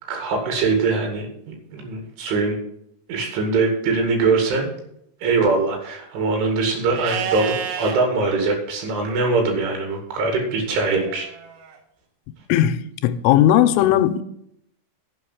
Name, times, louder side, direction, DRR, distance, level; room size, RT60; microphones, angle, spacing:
voice 1, 0.1-2.6 3.1-4.7 5.2-11.3, right 3 dB, 70° right, 4.6 m, -22 dB
Livestock farm animals working animals, 6.9-8.0 10.8-11.8, right 8 dB, 90° right, 3.9 m, -30 dB
voice 2, 12.5-14.2, left 12 dB, 85° left, 3.1 m, -17 dB
11.0 x 5.4 x 8.3 m
omnidirectional pair, 5.7 m